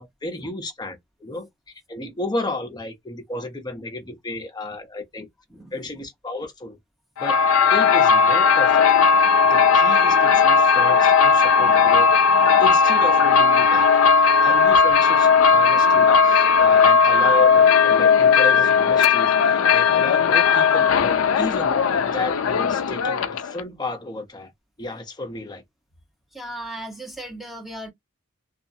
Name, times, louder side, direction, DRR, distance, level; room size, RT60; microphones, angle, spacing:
voice 1, 0.0-1.5 1.9-5.3 5.7-6.8 7.2-8.9 9.4-12.1 12.6-13.9 14.2-24.5 24.8-25.6, left 2 dB, 20° left, 0.8 m, -33 dB
voice 2, 5.5-5.9 26.3-27.9, right 1 dB, ahead, 1.2 m, -36 dB
sound 1, 7.2-23.6, left 5 dB, 90° left, 0.4 m, -17 dB
2.8 x 2.4 x 2.7 m
head